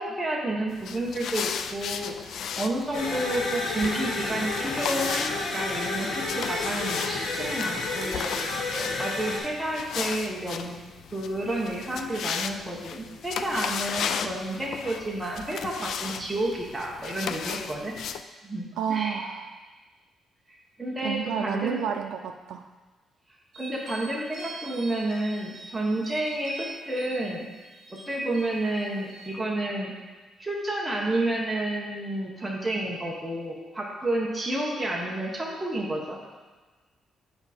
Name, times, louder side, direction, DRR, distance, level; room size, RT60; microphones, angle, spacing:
voice 1, 0.0-8.5 9.0-10.8 11.1-18.0 18.4-19.2 20.8-21.8 23.6-27.5 27.9-29.9 30.4-36.4, right 1 dB, 10° right, -3 dB, 0.9 m, -30 dB
sound 1, 0.7-18.2, left 7 dB, 60° left, 0.3 m, -35 dB
sound 2, 2.9-9.4, left 2 dB, 80° left, 1.4 m, -30 dB
voice 2, 18.8-19.5 21.0-22.6, right 8 dB, 90° right, 4 dB, 0.4 m, -30 dB
sound 3, 23.5-29.3, right 3 dB, 30° right, 2.3 m, -45 dB
7.9 x 4.7 x 4.2 m, 1.3 s
cardioid pair, 180°, 0 cm